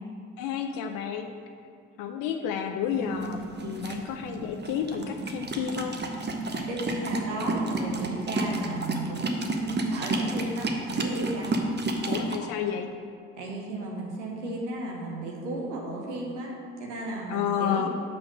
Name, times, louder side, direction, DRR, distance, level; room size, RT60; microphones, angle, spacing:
voice 1, 0.4-1.3 2.0-6.0 12.1-12.9 17.3-17.9, left 8 dB, 65° left, 6 dB, 0.6 m, -31 dB
sound 1, 2.9-12.4, right 2 dB, 30° right, 1.0 m, -31 dB
voice 2, 6.6-11.6 13.4-17.9, right 2 dB, 85° right, -2 dB, 1.0 m, -34 dB
5.8 x 5.1 x 6.3 m, 2.2 s
hypercardioid pair, 45°, 35 cm